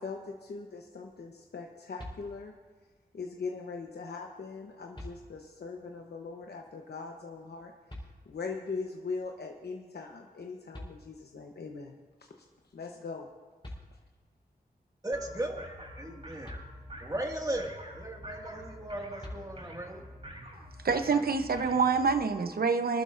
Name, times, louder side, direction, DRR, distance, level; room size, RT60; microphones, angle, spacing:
voice 1, 0.0-2.6 3.1-7.7 8.2-12.3 12.7-13.3, left 4 dB, 80° left, 1 dB, 1.0 m, -40 dB
sound 1, 2.0-2.7 4.2-4.3 4.9-5.7 7.9-8.6 10.4-10.5 10.7-11.6 13.3-13.4 13.6-14.4 16.4-17.3 19.2-20.0, left 1 dB, 30° left, 4.1 m, -47 dB
voice 2, 15.0-15.6 16.0-16.6 17.0-20.1, right 1 dB, 20° right, 1 dB, 1.9 m, -36 dB
sound 2, 15.1-22.2, equal, 40° right, 4.4 m, -47 dB
voice 3, 20.8-23.0, right 5 dB, 70° right, 9 dB, 0.8 m, -26 dB
24.0 x 12.5 x 2.6 m, 1.4 s
wide cardioid pair, 65°, 16 cm